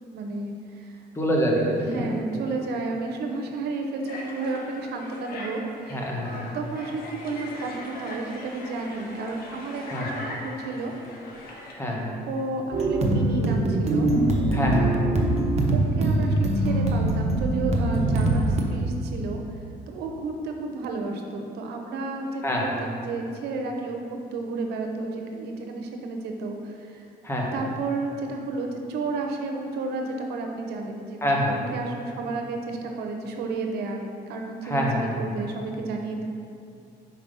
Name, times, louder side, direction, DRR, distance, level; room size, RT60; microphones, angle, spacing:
voice 1, 0.1-1.0 1.8-6.1 6.3-10.9 11.8-14.1 14.8-15.3 15.7-19.4 19.9-27.1 27.5-31.2 31.5-36.2, right 3 dB, 75° right, 2 dB, 0.8 m, -32 dB
voice 2, 1.1-2.1 5.9-6.5 9.9-10.1 11.7-12.2 14.5-15.0 22.4-22.6 27.2-27.5 31.2-31.5 34.6-35.2, equal, 15° left, -2 dB, 1.2 m, -26 dB
sound 1, 4.0-11.7, left 1 dB, 60° left, 1.1 m, -40 dB
sound 2, 12.7-18.6, right 1 dB, 40° right, 0.8 m, -23 dB
5.3 x 4.6 x 5.4 m, 2.5 s
cardioid pair, 110°, 17 cm